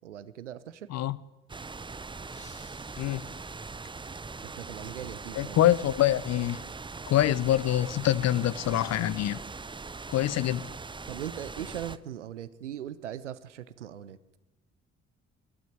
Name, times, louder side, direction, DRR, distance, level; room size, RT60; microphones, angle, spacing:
voice 1, 0.0-0.9 4.4-5.6 11.1-14.2, right 10 dB, 80° right, 0.7 m, -39 dB
sound 1, 1.5-12.0, right 4 dB, 15° right, 0.7 m, -41 dB
sound 2, 2.3-5.1, left 2 dB, 20° left, 6.9 m, -58 dB
voice 2, 5.4-6.6 7.1-9.4 10.1-10.7, left 13 dB, 50° left, 0.8 m, -25 dB
25.5 x 12.5 x 9.3 m
figure-of-eight pair, 40°, 35 cm